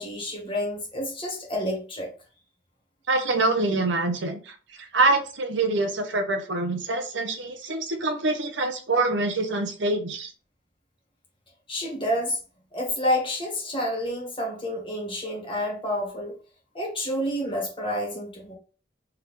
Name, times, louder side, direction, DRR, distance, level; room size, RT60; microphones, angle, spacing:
voice 1, 0.0-2.1 11.7-12.4 12.7-16.3 16.7-18.5, left 1 dB, 30° left, -2 dB, 1.5 m, -29 dB
voice 2, 3.1-10.3, right 2 dB, 85° right, 6 dB, 0.8 m, -25 dB
3.7 x 3.3 x 3.1 m, 0.37 s
head